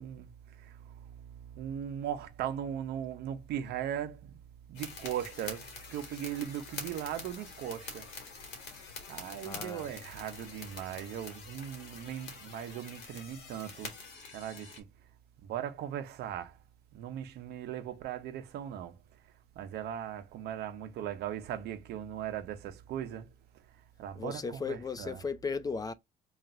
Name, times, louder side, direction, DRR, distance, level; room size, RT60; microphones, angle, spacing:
voice 1, 0.0-4.4 4.7-8.1 9.1-13.9 14.3-14.9 15.4-16.6 16.9-19.0 19.6-23.3 24.0-25.2, right 10 dB, 75° right, 0.7 m, -39 dB
sound 1, 4.7-14.8, left 4 dB, 80° left, 1.7 m, -46 dB
voice 2, 9.4-9.9 24.2-25.9, left 5 dB, 20° left, 0.3 m, -36 dB
3.2 x 2.4 x 4.0 m
cardioid pair, 110°, 17 cm